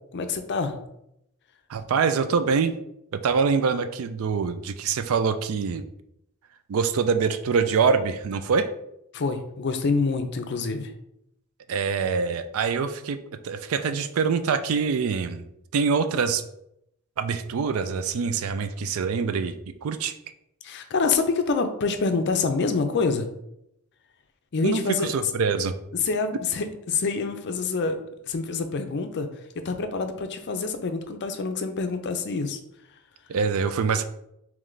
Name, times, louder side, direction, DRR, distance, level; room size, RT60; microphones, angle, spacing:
voice 1, 0.1-0.8 9.1-10.9 20.6-23.3 24.5-25.3 26.0-28.0 28.3-29.3 29.6-32.6, left 4 dB, 50° left, 7 dB, 0.5 m, -26 dB
voice 2, 1.7-2.7 3.1-5.8 6.7-8.7 11.7-13.2 13.4-15.4 15.7-16.4 17.2-19.5 19.8-20.1 24.6-25.7 33.3-34.0, right 5 dB, 65° right, 10 dB, 0.4 m, -24 dB
3.2 x 3.1 x 3.8 m, 0.79 s
head